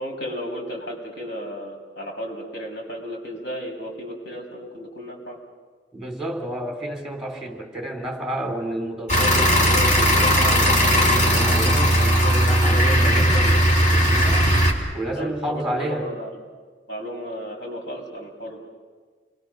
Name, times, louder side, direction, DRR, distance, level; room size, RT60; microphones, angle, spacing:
voice 1, 0.0-5.4 12.5-12.8 15.2-16.3 16.9-18.6, equal, 65° left, -1 dB, 5.9 m, -34 dB
voice 2, 5.9-14.5 14.9-16.1, right 1 dB, 5° right, 2 dB, 3.9 m, -30 dB
sound 1, 9.1-14.7, equal, 40° left, 3.4 m, -18 dB
29.0 x 22.0 x 6.6 m, 1.5 s
head